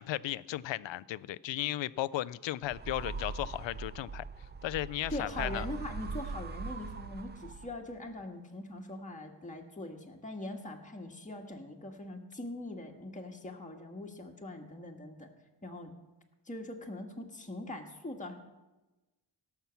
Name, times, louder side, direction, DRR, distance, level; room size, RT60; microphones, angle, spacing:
voice 1, 0.0-4.2 4.6-5.7, left 14 dB, 70° left, 19 dB, 0.5 m, -35 dB
sound 1, 2.6-7.9, right 4 dB, 25° right, 0.4 m, -41 dB
voice 2, 5.1-15.3 15.6-15.9 16.4-18.4, left 1 dB, 15° left, 1 dB, 1.6 m, -42 dB
17.0 x 5.9 x 7.1 m, 1.1 s
cardioid pair, 100°, 46 cm